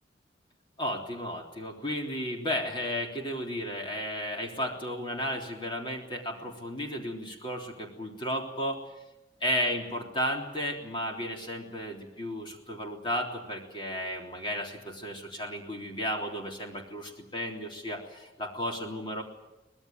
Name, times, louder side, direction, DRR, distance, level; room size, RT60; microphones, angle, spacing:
voice 1, 0.8-8.8 9.4-19.2, equal, 25° left, 1 dB, 3.5 m, -33 dB
24.5 x 19.5 x 9.1 m, 0.98 s
head